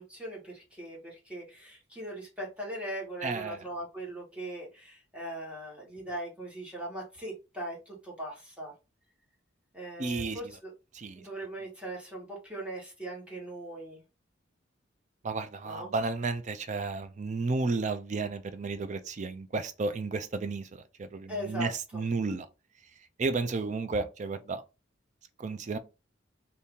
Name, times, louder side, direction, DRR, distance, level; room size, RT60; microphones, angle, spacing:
voice 1, 0.0-8.7 9.7-10.7 11.2-14.0 15.6-15.9 21.3-22.0, right 1 dB, 5° right, 1.5 m, -40 dB
voice 2, 3.2-3.6 10.0-10.4 10.9-11.2 15.2-22.5 23.2-24.6 25.4-25.8, right 3 dB, 40° right, 0.4 m, -32 dB
2.8 x 2.8 x 3.5 m
head